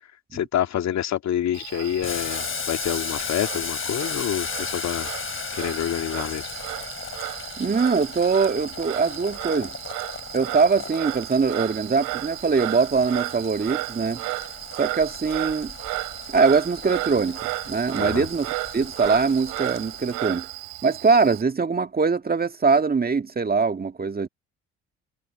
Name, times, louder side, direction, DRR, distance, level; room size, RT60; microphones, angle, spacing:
voice 1, 0.3-5.1 5.6-6.5 18.0-18.3, left 10 dB, 55° left, 2.8 m, -27 dB
Frog, 1.5-21.4, right 24 dB, 70° right, 3.1 m, -34 dB
Boiling, 2.0-20.4, left 6 dB, 40° left, 4.4 m, -36 dB
voice 2, 7.6-9.8 10.3-14.2 14.7-15.7 16.3-18.5 18.7-20.5 20.8-24.3, right 4 dB, 25° right, 2.1 m, -22 dB
hypercardioid pair, 50°, 33 cm